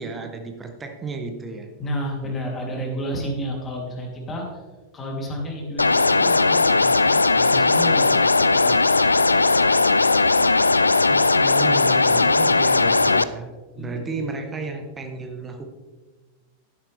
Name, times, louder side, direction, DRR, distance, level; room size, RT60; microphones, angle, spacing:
voice 1, 0.0-1.7 11.1-15.7, right 3 dB, 20° right, 5 dB, 1.4 m, -33 dB
voice 2, 1.8-4.6 4.9-9.2 13.7-14.0, equal, 20° left, -1 dB, 3.4 m, -31 dB
sound 1, 5.8-13.2, left 3 dB, 80° left, 0.4 m, -18 dB
12.5 x 10.5 x 3.5 m, 1.3 s
figure-of-eight pair, 90°, 0 cm